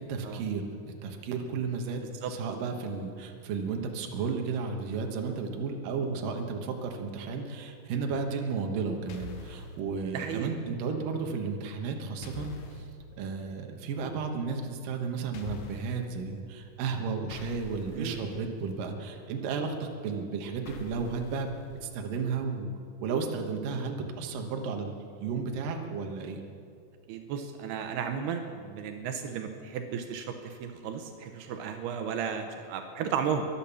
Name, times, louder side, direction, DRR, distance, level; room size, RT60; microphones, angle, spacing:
voice 1, 0.1-12.9 13.2-21.5 21.8-22.7 23.0-25.0 25.2-26.4, right 5 dB, 65° right, 3 dB, 2.8 m, -33 dB
sound 1, 9.1-9.8 12.2-12.9 15.3-16.1 17.3-18.7 20.7-22.1, left 5 dB, 70° left, 2.4 m, -46 dB
voice 2, 10.1-10.5 17.9-18.3 27.1-33.5, right 7 dB, 85° right, 6 dB, 2.9 m, -34 dB
22.5 x 8.7 x 7.0 m, 2.3 s
omnidirectional pair, 4.5 m